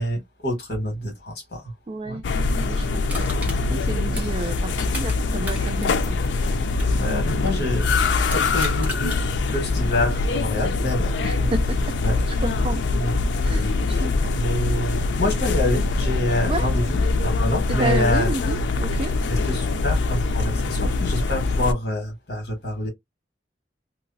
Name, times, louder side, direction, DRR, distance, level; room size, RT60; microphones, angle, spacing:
voice 1, 0.0-1.7 2.0-2.2 4.1-4.2 6.9-7.9 8.3-11.1 11.4-11.5 12.0-12.2 12.9-13.2 13.5-14.1 14.3-18.3 19.3-22.9, left 1 dB, 60° left, 1.7 m, -27 dB
voice 2, 1.9-2.2 2.5-3.3 3.7-6.2 7.1-7.2 11.2-11.9 12.3-12.8 13.4-14.4 16.4-16.7 17.7-19.1, right 2 dB, 30° right, 0.3 m, -31 dB
sound 1, 2.2-21.7, left 3 dB, 85° left, 0.4 m, -23 dB
Crushing, 3.1-5.2 5.4-7.7 8.2-9.2 9.7-9.8, equal, 10° right, 1.0 m, -36 dB
2.9 x 2.3 x 2.6 m
head